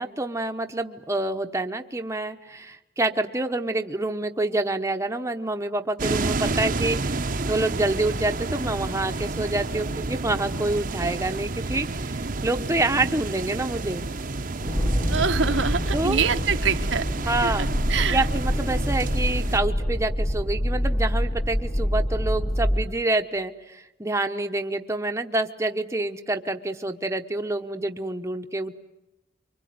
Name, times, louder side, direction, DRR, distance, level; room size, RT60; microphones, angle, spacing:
voice 1, 0.0-14.0 15.9-16.2 17.3-17.7 18.1-28.8, right 2 dB, 15° right, 5 dB, 1.0 m, -27 dB
sound 1, 6.0-19.6, right 3 dB, 45° right, 0.9 m, -30 dB
sound 2, 14.6-22.9, equal, 30° left, 1.6 m, -26 dB
voice 2, 15.1-17.1 17.4-18.3, right 6 dB, 80° right, 6 dB, 1.2 m, -25 dB
25.0 x 24.5 x 9.4 m, 0.94 s
head